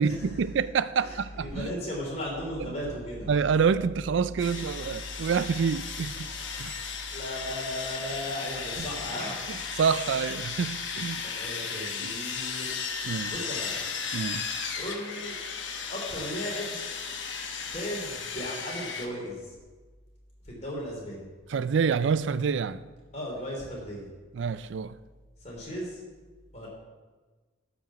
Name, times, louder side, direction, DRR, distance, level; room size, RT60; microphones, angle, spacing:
voice 1, 0.0-1.7 3.3-6.3 6.6-6.9 9.5-11.3 12.0-12.1 13.0-13.3 14.1-14.5 21.5-22.8 24.3-25.0, right 6 dB, 70° right, 0.4 m, -27 dB
voice 2, 1.0-3.3 7.1-9.3 11.2-12.7 13.3-13.8 14.8-15.3 15.9-16.9 17.7-19.5 20.4-21.3 23.1-24.1 25.4-26.0 26.5-26.7, equal, 35° left, 3.2 m, -36 dB
sound 1, 2.9-5.3 8.1-9.3, equal, 10° left, 3.3 m, -50 dB
Sawing, 4.4-19.1, left 6 dB, 70° left, 1.1 m, -35 dB
12.5 x 5.3 x 5.9 m
head